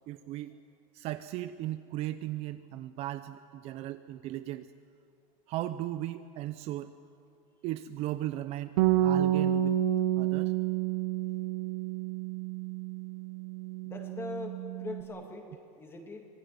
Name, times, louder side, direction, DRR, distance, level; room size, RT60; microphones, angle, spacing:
voice 1, 0.1-0.6 0.9-4.7 5.5-6.9 7.6-9.8 10.2-10.5, right 14 dB, 35° right, 11 dB, 0.6 m, -37 dB
Bass guitar, 8.8-15.0, right 12 dB, 85° right, 2.1 m, -29 dB
voice 2, 13.8-16.3, left 3 dB, 15° left, 3 dB, 2.5 m, -42 dB
25.5 x 18.5 x 9.5 m, 2.5 s
supercardioid pair, 170°, 18 cm